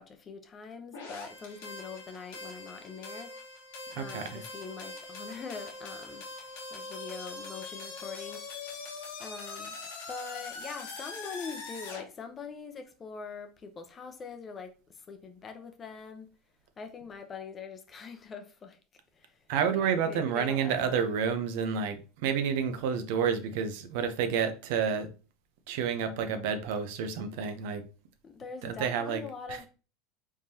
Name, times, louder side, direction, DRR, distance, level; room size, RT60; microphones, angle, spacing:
voice 1, 0.0-3.3 4.0-6.3 6.7-8.4 9.2-9.8 10.1-16.3 16.8-18.8 19.1-21.1 28.2-29.7, left 5 dB, 25° left, 0.7 m, -43 dB
sound 1, 0.9-12.0, left 3 dB, 90° left, 1.4 m, -42 dB
voice 2, 3.9-4.4 19.5-25.1 25.7-27.8 28.6-29.2, right 7 dB, 70° right, 0.7 m, -29 dB
4.7 x 3.6 x 2.8 m
supercardioid pair, 130°, 0 cm